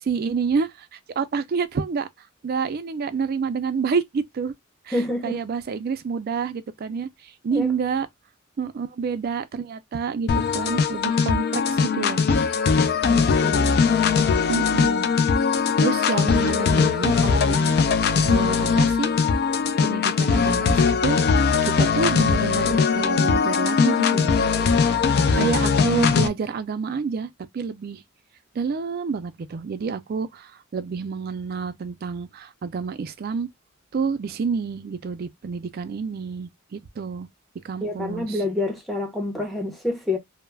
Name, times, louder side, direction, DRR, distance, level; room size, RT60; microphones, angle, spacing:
voice 1, 0.0-2.1 2.4-4.5 4.9-8.1 8.6-12.4 14.5-15.1 15.8-17.7 18.3-19.1 19.8-21.2 21.6-24.5 25.3-28.0 28.5-33.5 33.9-37.3 37.6-38.4, right 5 dB, 45° right, 0.3 m, -28 dB
voice 2, 4.9-5.4 7.5-7.7 13.0-13.7 37.8-40.2, left 2 dB, ahead, 0.6 m, -28 dB
sound 1, 10.3-26.3, left 5 dB, 50° left, 0.4 m, -20 dB
2.3 x 2.0 x 3.1 m
head